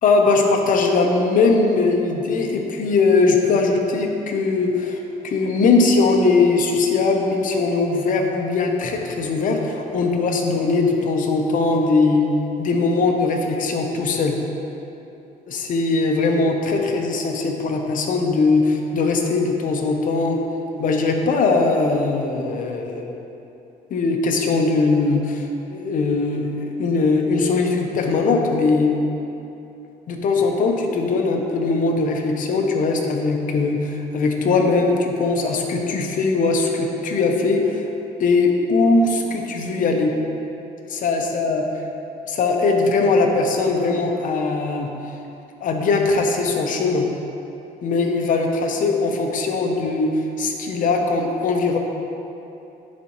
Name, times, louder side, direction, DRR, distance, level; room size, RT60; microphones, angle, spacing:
voice 1, 0.0-5.0 5.2-12.3 12.6-14.3 15.5-20.4 20.8-23.2 23.9-29.0 30.1-37.8 38.2-40.1 40.9-41.6 42.3-44.9 45.6-47.1 47.8-51.8, left 3 dB, 50° left, 2 dB, 0.8 m, -20 dB
10.0 x 4.2 x 3.1 m, 2.9 s
cardioid pair, 110°, 17 cm